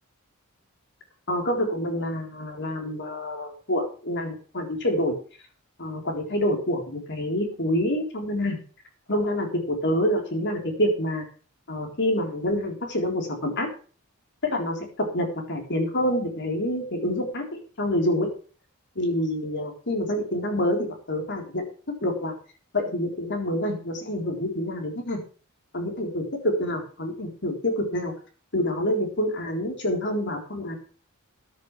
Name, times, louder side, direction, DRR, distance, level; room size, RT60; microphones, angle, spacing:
voice 1, 1.3-5.1 5.8-8.6 9.1-11.2 11.7-13.7 14.4-17.5 17.8-18.3 19.0-21.6 22.0-22.3 22.7-25.2 25.7-28.1 28.5-30.8, left 1 dB, 55° left, 3 dB, 3.9 m, -27 dB
14.0 x 10.5 x 3.3 m, 0.39 s
head